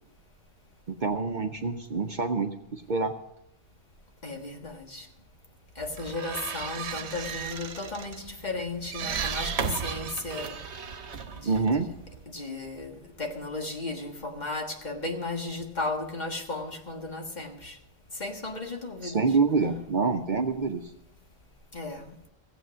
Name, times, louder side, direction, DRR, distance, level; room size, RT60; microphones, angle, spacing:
voice 1, 0.9-3.1 11.4-11.9 19.0-20.9, right 4 dB, 50° right, 0.8 m, -26 dB
voice 2, 4.2-5.1 5.8-10.6 11.4-11.7 12.3-17.8 18.1-19.2 21.7-22.1, left 2 dB, 40° left, 1.7 m, -35 dB
sound 1, 5.8-12.3, right 6 dB, 75° right, 1.1 m, -35 dB
16.0 x 8.0 x 6.2 m
omnidirectional pair, 1.2 m